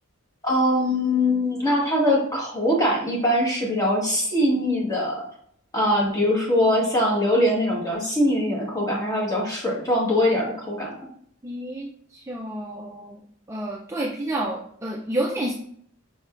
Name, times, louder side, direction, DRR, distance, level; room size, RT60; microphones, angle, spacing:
voice 1, 0.4-5.2 5.7-10.9, left 1 dB, 15° left, -3 dB, 1.3 m, -22 dB
voice 2, 11.4-13.2 13.5-15.5, right 1 dB, 15° right, -3 dB, 0.4 m, -30 dB
5.3 x 3.6 x 2.4 m, 0.64 s
head